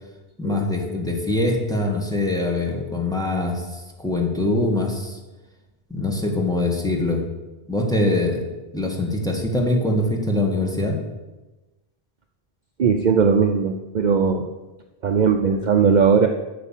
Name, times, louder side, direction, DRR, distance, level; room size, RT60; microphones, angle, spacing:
voice 1, 0.4-5.2 5.9-7.2 7.7-8.5 8.7-11.0, left 2 dB, 5° left, 0 dB, 1.7 m, -23 dB
voice 2, 12.8-14.5 15.0-16.3, right 6 dB, 50° right, 5 dB, 0.7 m, -18 dB
8.5 x 6.9 x 7.3 m, 1.1 s
omnidirectional pair, 1.0 m